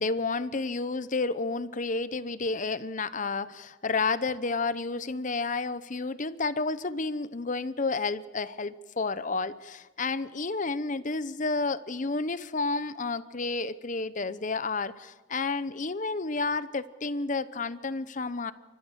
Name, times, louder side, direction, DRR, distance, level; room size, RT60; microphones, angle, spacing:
voice 1, 0.0-18.5, left 3 dB, 40° left, 15 dB, 0.8 m, -31 dB
29.5 x 14.5 x 8.2 m, 1.2 s
head